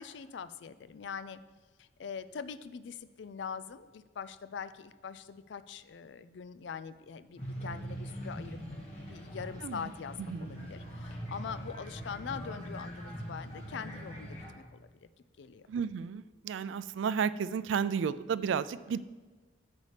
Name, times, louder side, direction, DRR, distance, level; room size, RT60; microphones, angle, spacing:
voice 1, 0.0-1.4 1.8-8.6 9.1-14.9 15.4-15.7, left 6 dB, 70° left, 14 dB, 0.4 m, -43 dB
sound 1, 7.4-14.5, equal, 35° left, 1.7 m, -42 dB
voice 2, 9.6-9.9 10.2-10.7 15.7-19.0, right 6 dB, 85° right, 16 dB, 0.3 m, -33 dB
10.5 x 7.1 x 3.3 m, 1.3 s
head